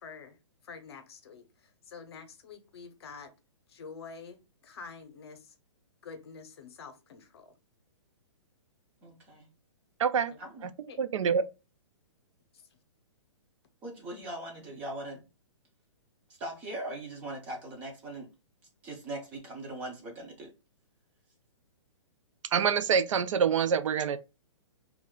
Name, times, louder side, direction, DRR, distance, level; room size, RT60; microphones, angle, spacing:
voice 1, 0.0-0.4 0.6-3.3 3.7-5.5 6.0-7.5 10.3-10.4 10.9-11.0 12.5-12.6, left 5 dB, 55° left, 0.6 m, -47 dB
voice 2, 9.0-9.5 10.4-10.7 13.8-15.2 16.4-18.3 18.8-20.5, right 1 dB, 10° right, 0.3 m, -40 dB
voice 3, 10.0-10.3 11.0-11.4 22.5-24.2, right 7 dB, 90° right, 0.4 m, -26 dB
2.4 x 2.2 x 3.5 m
hypercardioid pair, 165°, 16 cm